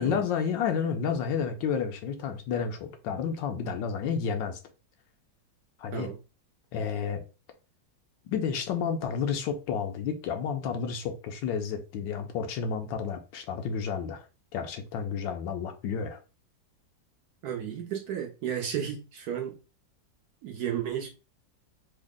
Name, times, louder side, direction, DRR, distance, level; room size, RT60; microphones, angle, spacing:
voice 1, 0.0-4.6 5.8-6.1 6.7-7.2 8.3-14.3 14.5-16.2, left 6 dB, 85° left, 1.3 m, -31 dB
voice 2, 17.4-19.5 20.4-21.1, right 9 dB, 70° right, 1.0 m, -33 dB
3.6 x 2.0 x 3.5 m
omnidirectional pair, 2.0 m